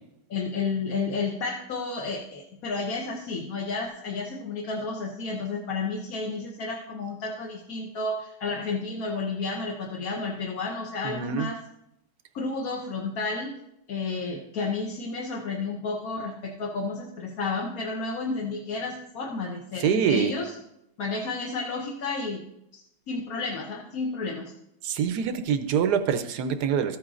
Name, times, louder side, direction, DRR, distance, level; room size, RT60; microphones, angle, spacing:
voice 1, 0.3-11.6 12.3-13.5 13.9-20.5 21.0-22.4 23.1-24.5, left 3 dB, 55° left, -1 dB, 1.2 m, -31 dB
voice 2, 11.0-11.5 19.8-20.3 24.8-27.0, right 7 dB, 70° right, 10 dB, 1.1 m, -25 dB
13.5 x 8.9 x 2.5 m, 0.81 s
omnidirectional pair, 2.1 m